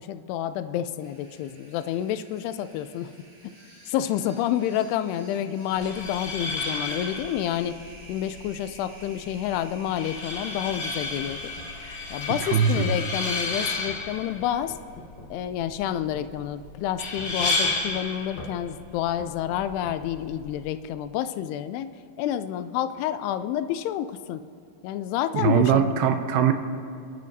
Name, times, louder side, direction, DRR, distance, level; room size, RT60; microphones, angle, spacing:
voice 1, 0.0-3.1 3.4-3.5 3.9-7.8 8.1-11.4 12.1-14.8 15.3-21.9 22.2-24.4 24.8-25.9, left 11 dB, 85° left, 11 dB, 2.6 m, -29 dB
sound 1, 1.0-13.8, right 1 dB, 40° right, 2.9 m, -50 dB
sound 2, 5.7-20.7, left 3 dB, 45° left, 1.6 m, -33 dB
sound 3, 10.5-11.8 12.8-13.0 13.9-15.9 16.1-16.3 17.2-18.0 18.4-18.6 19.2-20.0, left 2 dB, 65° left, 3.0 m, -43 dB
voice 2, 12.4-13.0 25.3-26.5, right 8 dB, 80° right, 7 dB, 2.5 m, -21 dB
29.5 x 11.0 x 2.7 m, 2.5 s
omnidirectional pair, 4.6 m